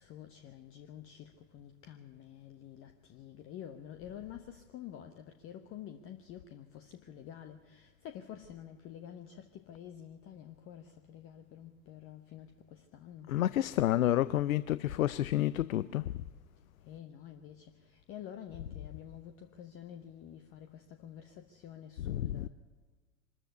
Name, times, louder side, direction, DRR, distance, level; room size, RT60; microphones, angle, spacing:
voice 1, 0.0-13.3 16.8-22.5, left 10 dB, 30° left, 1.0 m, -49 dB
voice 2, 13.3-16.1 22.0-22.5, left 13 dB, 70° left, 0.6 m, -30 dB
24.0 x 13.5 x 8.2 m
figure-of-eight pair, 95°, 43 cm